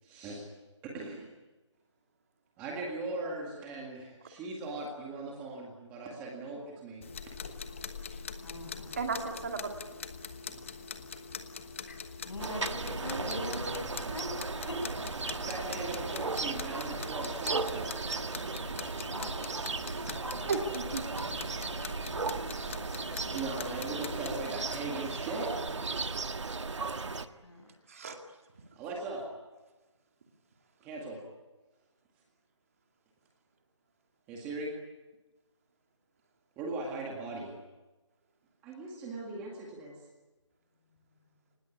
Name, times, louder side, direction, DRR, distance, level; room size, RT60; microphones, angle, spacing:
voice 1, 0.0-0.5 0.8-1.3 2.6-7.3 8.6-8.7 15.4-18.1 23.3-26.1 27.2-27.4 27.9-28.0 28.8-29.3 30.8-31.2 34.3-34.8 36.6-37.5 38.6-40.0, right 2 dB, 10° right, -1 dB, 1.9 m, -39 dB
sound 1, 7.0-24.5, left 5 dB, 25° left, 1.2 m, -43 dB
voice 2, 8.4-8.9 12.2-14.8 19.0-19.4 27.4-27.7, left 1 dB, 65° left, 5 dB, 7.6 m, -41 dB
voice 3, 9.0-9.7 18.1-18.2 19.9-20.0 20.5-21.3 23.1-23.2 26.9-27.1 27.9-28.2, right 4 dB, 30° right, 4 dB, 2.2 m, -35 dB
sound 2, 12.4-27.3, right 4 dB, 75° right, 1.7 m, -36 dB
24.5 x 20.0 x 9.8 m, 1.2 s
hypercardioid pair, 175°, 15 cm